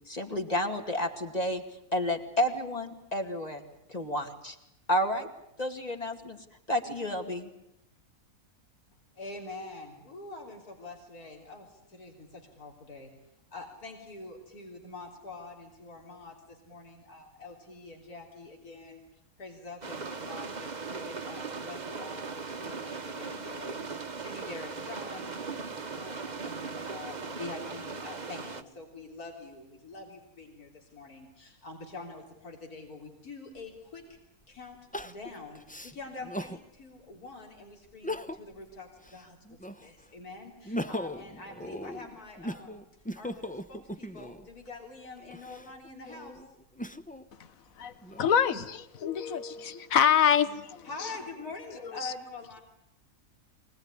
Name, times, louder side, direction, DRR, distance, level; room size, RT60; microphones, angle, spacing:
voice 1, 0.1-1.6 1.9-3.6 3.9-4.6 4.9-5.3 5.6-6.4 6.7-7.5, left 1 dB, 25° left, 2.5 m, -30 dB
voice 2, 9.2-13.1 13.5-19.0 19.4-25.4 25.8-34.2 34.5-42.8 43.2-46.4 49.0-50.0 50.8-52.6, left 3 dB, 85° left, 4.0 m, -45 dB
sound 1, 19.8-28.6, right 4 dB, 35° right, 1.1 m, -38 dB
Crying sobbing, 34.9-36.6 37.1-37.2 37.9-38.6 39.0-40.0 40.5-44.5 45.2-47.3 47.8-48.6, left 1 dB, 10° left, 0.6 m, -39 dB
voice 3, 48.2-49.4 49.9-50.5, left 8 dB, 65° left, 1.5 m, -24 dB
24.5 x 19.0 x 9.7 m
omnidirectional pair, 1.5 m